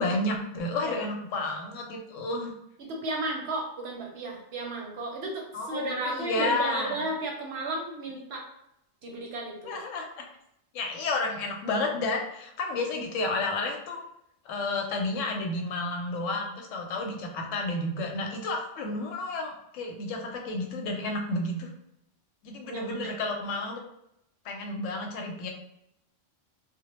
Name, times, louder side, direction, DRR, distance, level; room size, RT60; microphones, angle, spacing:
voice 1, 0.0-2.5 5.5-7.0 9.6-10.1 10.7-14.0 14.4-21.7 22.4-23.8 24.4-25.5, left 2 dB, 90° left, 2 dB, 0.9 m, -31 dB
voice 2, 2.8-8.4 9.0-9.8 22.7-23.1, right 2 dB, 65° right, 0 dB, 0.8 m, -34 dB
2.1 x 2.1 x 2.9 m, 0.79 s
omnidirectional pair, 1.3 m